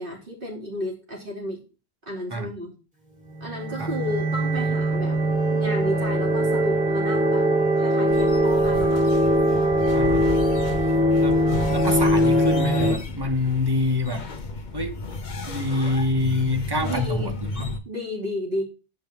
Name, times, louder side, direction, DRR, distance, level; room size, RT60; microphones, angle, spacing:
voice 1, 0.0-1.6 2.0-2.7 3.4-7.5 7.8-9.1 16.8-17.3 17.8-18.6, left 1 dB, 55° right, 3.3 m, -32 dB
sound 1, 3.3-12.9, right 1 dB, 5° right, 2.8 m, -21 dB
sound 2, 8.1-17.8, left 3 dB, 45° left, 1.1 m, -33 dB
voice 2, 9.9-10.3 11.2-11.4 11.7-14.3 14.7-15.1 15.5-17.7, left 2 dB, 20° right, 1.2 m, -26 dB
8.5 x 5.3 x 5.8 m
omnidirectional pair, 1.1 m